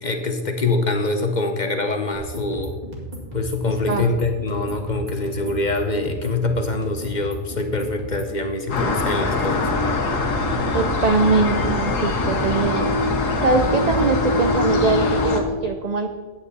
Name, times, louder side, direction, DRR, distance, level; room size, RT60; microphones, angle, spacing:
voice 1, 0.0-2.7 3.3-9.7, left 2 dB, 40° left, 5 dB, 0.8 m, -24 dB
sound 1, 2.1-8.3, right 1 dB, 30° right, 2.2 m, -35 dB
voice 2, 3.7-4.0 10.7-12.9 13.4-16.1, right 4 dB, 55° right, 6 dB, 0.4 m, -22 dB
sound 2, 8.7-15.4, left 2 dB, 85° left, 1.5 m, -22 dB
9.3 x 8.8 x 4.1 m, 1.4 s
omnidirectional pair, 1.3 m